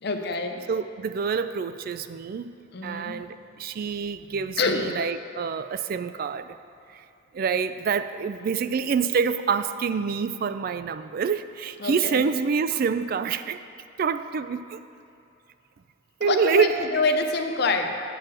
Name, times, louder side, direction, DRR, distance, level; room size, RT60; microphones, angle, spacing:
voice 1, 0.0-0.6 2.7-3.2 4.6-5.0 11.8-12.3 16.2-17.9, left 3 dB, 55° left, 5 dB, 0.7 m, -26 dB
voice 2, 0.7-2.5 2.8-6.6 6.9-7.0 7.3-13.6 14.0-14.8 16.2-17.2, right 6 dB, 50° right, 12 dB, 0.3 m, -27 dB
8.9 x 4.7 x 7.4 m, 2.7 s
head